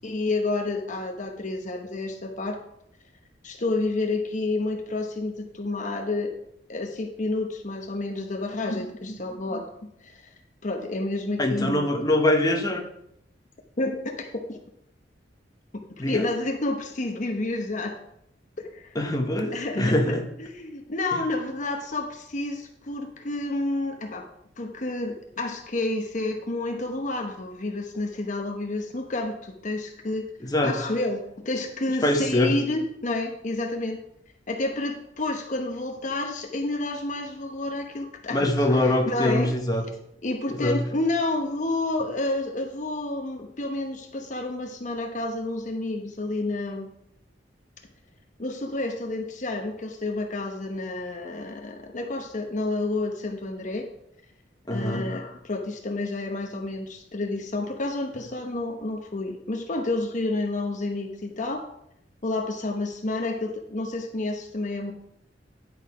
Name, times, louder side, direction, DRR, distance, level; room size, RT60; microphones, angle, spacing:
voice 1, 0.0-2.6 3.4-6.3 6.7-9.7 10.0-10.2 10.6-11.8 13.8-14.6 16.0-18.0 18.6-19.0 19.5-24.3 24.6-30.2 30.6-34.0 34.5-39.5 40.2-46.9 48.4-53.9 54.7-61.6 62.2-64.9, left 2 dB, 45° left, 3 dB, 0.9 m, -30 dB
voice 2, 11.4-12.8 16.0-16.2 18.9-20.3 21.1-21.2 30.4-30.8 32.0-32.5 38.3-39.8 40.5-40.8 54.7-55.1, left 1 dB, 20° left, 3 dB, 1.1 m, -23 dB
10.0 x 6.4 x 4.8 m, 0.76 s
head